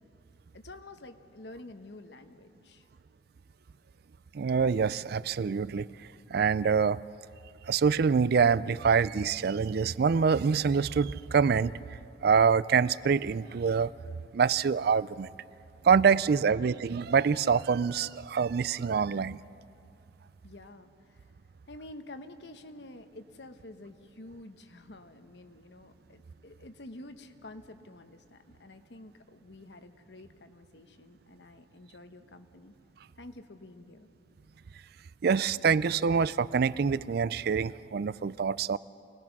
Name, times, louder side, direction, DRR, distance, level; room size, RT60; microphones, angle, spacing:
voice 1, 0.5-2.9 16.3-16.7 20.4-21.3 21.7-32.7 33.2-34.1, left 2 dB, 70° left, 8 dB, 1.1 m, -49 dB
voice 2, 4.3-5.9 6.3-7.0 7.7-11.8 12.2-13.9 14.3-15.3 15.8-19.4 35.2-38.8, right 6 dB, 60° right, 19 dB, 0.4 m, -25 dB
25.0 x 19.0 x 6.0 m, 2.5 s
head